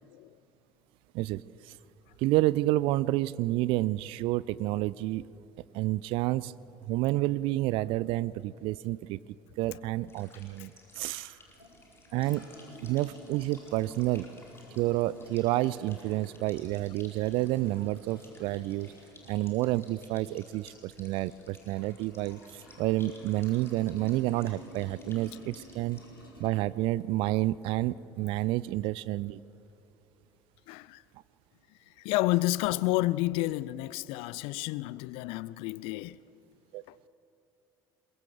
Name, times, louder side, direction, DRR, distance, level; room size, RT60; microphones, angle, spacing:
voice 1, 0.0-0.4 10.6-10.7 30.7-31.0 32.0-36.2 36.9-37.0, left 18 dB, 55° left, 0.4 m, -30 dB
voice 2, 1.1-1.8 2.2-5.3 5.7-6.5 6.9-9.2 9.6-11.4 12.1-12.4 12.8-14.3 14.8-18.9 19.3-26.0 26.4-29.4 36.7-36.8, right 17 dB, 50° right, 0.4 m, -29 dB
sound 1, 10.1-26.1, left 2 dB, 20° left, 4.7 m, -57 dB
sound 2, 11.5-27.3, left 1 dB, 85° left, 3.4 m, -53 dB
22.5 x 22.0 x 6.6 m
figure-of-eight pair, 60°, 11 cm